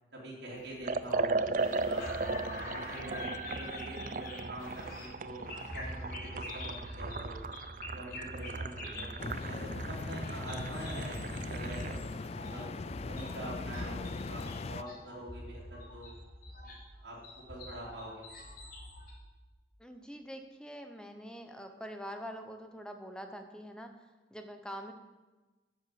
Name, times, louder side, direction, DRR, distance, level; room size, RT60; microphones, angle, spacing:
voice 1, 0.1-2.2 2.7-5.4 5.7-7.4 7.9-12.0 12.4-12.7 13.1-16.1 16.5-16.7 17.0-17.2 17.5-18.5, right 1 dB, 80° right, -6 dB, 3.5 m, -45 dB
Liquid, 0.8-12.0, right 3 dB, 45° right, 0.5 m, -37 dB
sound 1, 1.6-19.1, left 1 dB, 55° left, 3.3 m, -45 dB
voice 2, 8.7-9.1 19.8-23.9 24.3-24.9, equal, 5° left, 6 dB, 0.9 m, -45 dB
sound 2, 9.2-14.8, left 3 dB, 35° left, 0.3 m, -40 dB
9.7 x 7.8 x 7.8 m, 1.2 s
head